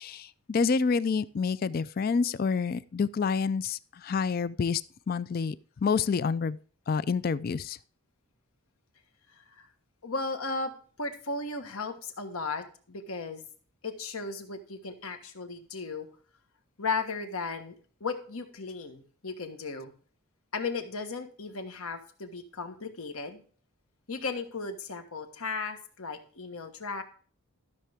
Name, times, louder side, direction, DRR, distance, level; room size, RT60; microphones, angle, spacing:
voice 1, 0.0-4.8 5.1-5.6 5.8-6.6 6.9-7.8, left 5 dB, 40° left, 0.3 m, -28 dB
voice 2, 9.3-9.7 10.0-13.5 13.8-16.1 16.8-19.9 20.5-23.4 24.1-27.0, left 4 dB, 75° left, 1.4 m, -36 dB
13.0 x 6.7 x 3.5 m
head